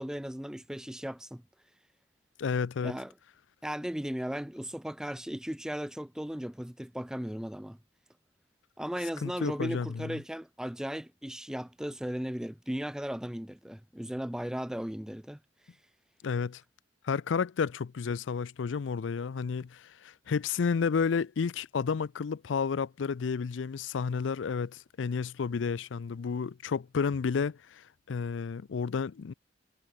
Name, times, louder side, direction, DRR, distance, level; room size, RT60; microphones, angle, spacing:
voice 1, 0.0-1.4 2.8-3.1 3.6-7.8 8.8-15.4, equal, 5° right, 0.4 m, -36 dB
voice 2, 2.4-3.0 9.2-10.2 16.2-16.6 17.0-29.3, left 5 dB, 85° left, 0.4 m, -31 dB
head